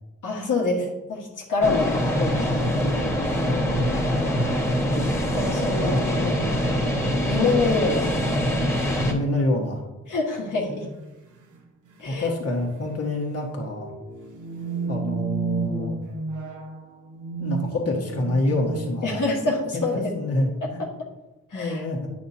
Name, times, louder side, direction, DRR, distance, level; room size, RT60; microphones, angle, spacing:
voice 1, 0.2-2.7 5.3-6.0 6.2-6.6 7.3-8.1 10.1-10.9 12.0-12.3 19.0-20.1 21.0-21.1 21.5-21.8, left 3 dB, 80° left, -3 dB, 1.7 m, -26 dB
sound 1, 1.6-9.1, equal, 10° left, 1.7 m, -24 dB
voice 2, 3.4-4.1 5.8-6.3 8.9-9.8 12.0-13.9 14.9-15.9 17.4-19.2 19.7-20.8 21.5-22.1, left 1 dB, 50° left, -2 dB, 1.6 m, -27 dB
sound 2, 10.2-10.3 11.3-11.6 11.9-12.0 12.4-12.7 13.6-19.3, right 4 dB, 70° right, 1.1 m, -32 dB
9.2 x 5.9 x 2.8 m, 1.1 s
cardioid pair, 65°, 31 cm